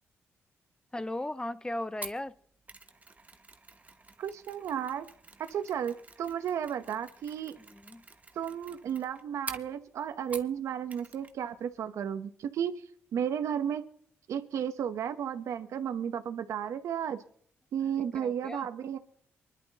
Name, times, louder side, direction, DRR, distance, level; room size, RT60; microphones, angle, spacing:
voice 1, 0.9-2.3 7.7-8.0 18.1-18.7, left 1 dB, 15° left, 0.6 m, -36 dB
Mechanisms, 2.0-10.6 10.9-11.4 11.6-11.8, right 3 dB, 30° right, 1.1 m, -48 dB
voice 2, 4.2-5.1 5.5-7.5 8.3-12.8 13.1-13.8 14.3-17.2 17.7-19.0, right 8 dB, 75° right, 0.9 m, -33 dB
24.0 x 11.5 x 2.9 m
cardioid pair, 65°, 5 cm